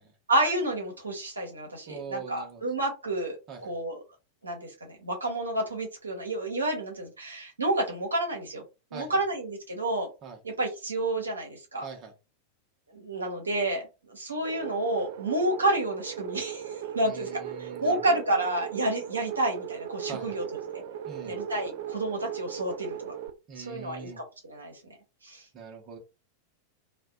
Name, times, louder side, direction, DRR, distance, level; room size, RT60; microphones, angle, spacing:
voice 1, 0.3-3.4 3.6-4.0 4.4-8.6 8.9-10.1 10.4-11.9 12.9-20.4 20.7-20.8 21.3-23.1 23.6-24.7 25.2-25.4, right 1 dB, 75° right, 0 dB, 0.8 m, -30 dB
voice 2, 1.9-2.6 3.5-3.7 8.9-9.2 10.2-10.4 11.8-12.1 17.0-18.2 20.1-20.4 21.1-21.4 23.5-24.2 25.5-26.0, right 6 dB, 30° right, 2 dB, 0.8 m, -42 dB
sound 1, 14.4-23.3, right 9 dB, 50° right, 0.3 m, -37 dB
2.5 x 2.1 x 2.3 m, 0.28 s
figure-of-eight pair, 90°, 0 cm